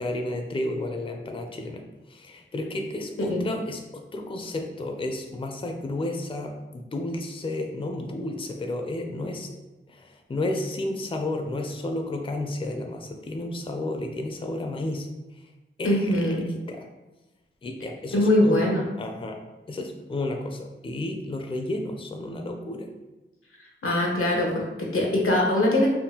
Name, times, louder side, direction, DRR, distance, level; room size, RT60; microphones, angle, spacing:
voice 1, 0.0-1.8 2.1-9.6 9.9-15.1 15.8-16.9 17.6-18.7 19.0-19.4 19.7-22.9, left 2 dB, 25° left, 4 dB, 0.4 m, -32 dB
voice 2, 15.8-16.4 18.1-18.8 23.8-25.9, left 1 dB, 85° left, -1 dB, 0.7 m, -22 dB
3.5 x 2.2 x 2.8 m, 1.1 s
wide cardioid pair, 50°, 21 cm